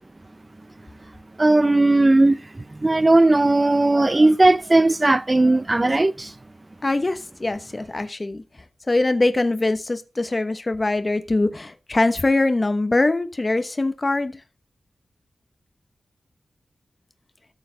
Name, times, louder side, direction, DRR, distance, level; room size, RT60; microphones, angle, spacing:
voice 1, 1.4-6.3, right 2 dB, 25° right, 0.5 m, -17 dB
voice 2, 6.8-8.4 8.9-14.4, left 2 dB, 30° left, 1.0 m, -22 dB
14.0 x 6.7 x 4.0 m
wide cardioid pair, 125°, 0 cm